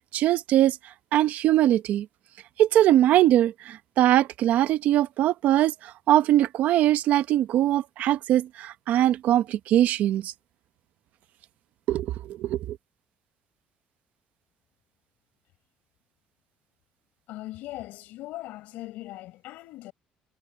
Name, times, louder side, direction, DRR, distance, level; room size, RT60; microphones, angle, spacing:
voice 1, 0.1-0.8 1.1-2.1 2.6-10.3 11.9-12.8, right 13 dB, 70° right, 0.9 m, -22 dB
voice 2, 17.3-19.9, left 16 dB, 85° left, 5.0 m, -39 dB
cardioid pair, 120°, 3 cm